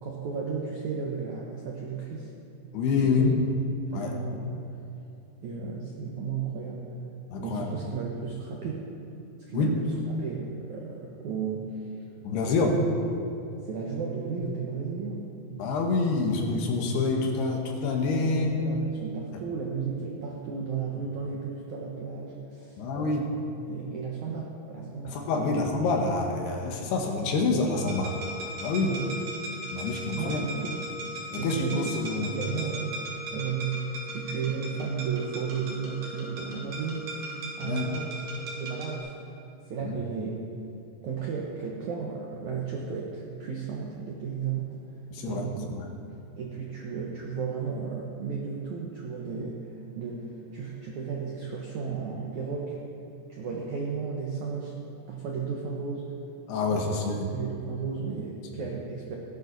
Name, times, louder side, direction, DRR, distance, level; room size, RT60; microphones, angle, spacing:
voice 1, 0.0-2.3 3.0-3.3 3.9-4.8 5.4-6.8 7.4-8.9 9.4-9.9 10.2-11.9 12.4-12.8 13.6-15.3 18.2-23.2 23.6-25.6 28.8-29.2 30.1-30.8 31.3-31.8 32.1-37.2 37.6-39.1 39.7-40.5 41.0-44.7 45.2-45.7 46.4-52.8 53.3-54.8 55.1-56.1 56.6-57.0 57.3-59.2, right 5 dB, 75° right, -2 dB, 1.7 m, -34 dB
voice 2, 2.7-3.4 3.9-4.2 7.3-7.7 9.5-9.8 12.2-12.8 15.6-18.6 22.8-23.3 25.1-28.1 28.6-28.9 29.7-30.4 31.3-32.4 37.6-37.8 39.8-39.9 45.1-45.9 56.5-57.3, left 3 dB, 70° left, 2 dB, 3.1 m, -27 dB
sound 1, 27.7-39.0, right 1 dB, 60° right, 3.5 m, -38 dB
18.0 x 11.5 x 4.0 m, 2.7 s
omnidirectional pair, 5.1 m